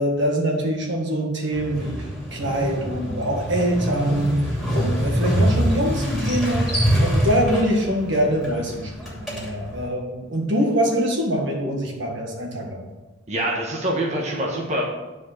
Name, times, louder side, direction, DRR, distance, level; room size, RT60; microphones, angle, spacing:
voice 1, 0.0-12.9, equal, 65° right, 0 dB, 1.8 m, -24 dB
Motorcycle, 1.5-9.9, equal, ahead, 2.7 m, -25 dB
voice 2, 13.3-14.8, right 1 dB, 35° right, -2 dB, 1.4 m, -25 dB
9.5 x 4.9 x 5.9 m, 1.1 s
head